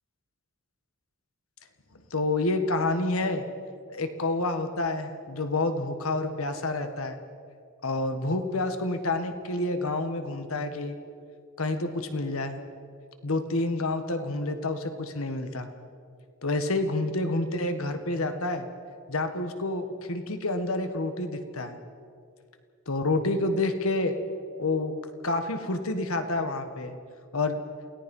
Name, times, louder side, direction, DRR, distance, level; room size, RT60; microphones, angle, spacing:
voice 1, 2.1-3.4 3.9-7.2 7.8-11.0 11.6-12.6 13.2-15.7 16.4-18.7 19.1-21.8 22.9-24.1 24.6-24.9 25.2-27.0 27.3-27.6, left 2 dB, 75° left, 8 dB, 1.6 m, -28 dB
28.0 x 17.5 x 5.5 m, 2.3 s
head